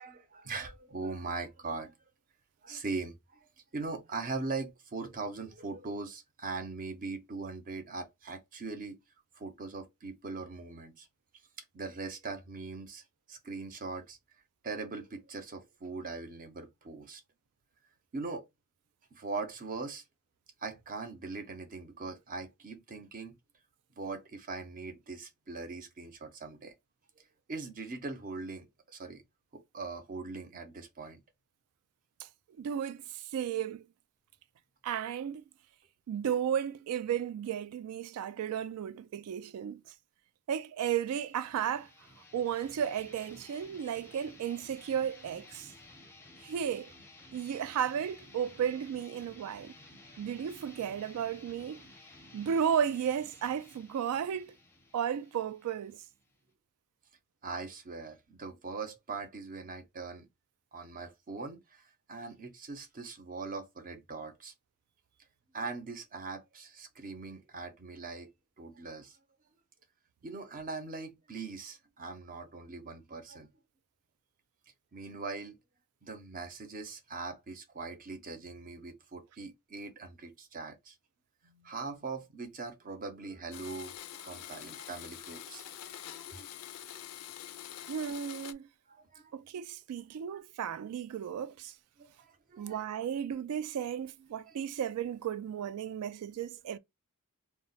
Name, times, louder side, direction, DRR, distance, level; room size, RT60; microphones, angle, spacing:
voice 1, 0.0-1.9 2.6-3.2 3.7-9.0 9.3-11.1 11.7-13.0 13.3-14.2 14.6-17.2 18.1-18.4 19.1-20.0 20.6-23.4 24.0-26.7 27.5-29.2 29.5-31.2 57.4-60.3 60.7-61.8 62.1-64.5 65.5-68.3 68.6-69.2 70.2-73.5 74.9-75.6 76.0-80.9 81.4-87.1 88.9-89.3 90.3-90.4 92.0-92.8 94.4-94.6, right 4 dB, 40° right, 0.6 m, -41 dB
voice 2, 32.6-33.8 34.8-35.4 36.1-39.8 40.5-41.9 42.3-45.7 46.4-46.9 47.3-49.7 50.2-51.8 52.3-54.5 54.9-56.0 87.9-88.7 89.3-91.7 92.6-96.8, right 8 dB, 75° right, 0.3 m, -34 dB
sound 1, 41.1-56.5, left 2 dB, 10° left, 0.6 m, -55 dB
Domestic sounds home sounds, 83.5-88.5, left 12 dB, 80° left, 0.3 m, -46 dB
2.1 x 2.1 x 3.8 m
head